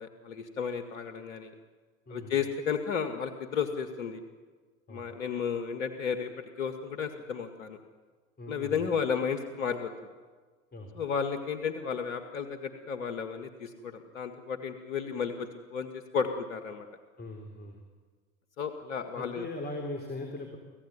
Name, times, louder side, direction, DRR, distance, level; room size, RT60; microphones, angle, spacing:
voice 1, 0.0-1.5 2.1-4.2 4.9-7.8 8.5-9.9 11.0-16.9 18.6-19.5, left 6 dB, 75° left, 7 dB, 1.9 m, -33 dB
voice 2, 8.4-8.8 10.7-10.9 17.2-17.8 19.2-20.6, left 2 dB, 25° left, 3 dB, 3.6 m, -39 dB
26.0 x 16.0 x 9.6 m, 1.5 s
hypercardioid pair, 90°, 41 cm